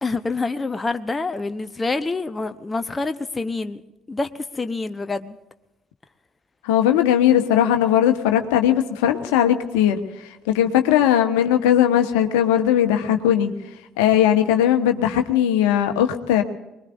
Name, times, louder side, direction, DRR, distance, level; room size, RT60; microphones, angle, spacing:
voice 1, 0.0-3.8 4.1-5.4, left 3 dB, 20° left, 10 dB, 0.9 m, -27 dB
voice 2, 6.6-13.5 14.0-16.4, left 10 dB, 70° left, 6 dB, 1.3 m, -19 dB
24.5 x 21.0 x 2.6 m, 0.97 s
figure-of-eight pair, 50°, 0 cm